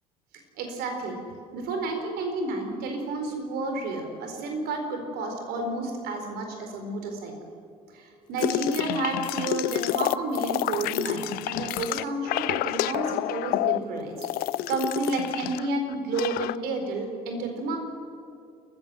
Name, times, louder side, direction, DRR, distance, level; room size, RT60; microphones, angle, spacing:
voice 1, 0.6-1.2 1.5-7.4 7.9-14.3 14.7-17.8, right 2 dB, 55° right, 4 dB, 4.3 m, -31 dB
sound 1, 8.4-15.7 15.9-16.6, left 16 dB, 50° left, 0.5 m, -29 dB
29.0 x 15.0 x 7.6 m, 2.4 s
figure-of-eight pair, 60°, 20 cm